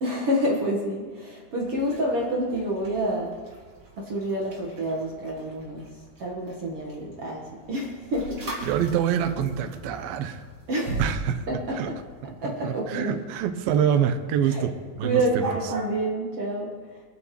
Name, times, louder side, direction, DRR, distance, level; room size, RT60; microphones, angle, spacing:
voice 1, 0.0-3.4 4.0-5.9 6.2-8.6 10.7-11.0 11.5-12.0 12.4-13.2 14.4-14.6 15.0-17.0, right 1 dB, 55° right, -2 dB, 1.8 m, -28 dB
sound 1, 1.6-16.0, right 2 dB, 30° right, 2.4 m, -43 dB
voice 2, 8.6-10.4 11.0-11.4 11.7-11.9 12.4-15.4, right 8 dB, 85° right, 9 dB, 2.6 m, -26 dB
25.0 x 8.4 x 3.1 m, 1.5 s
omnidirectional pair, 4.2 m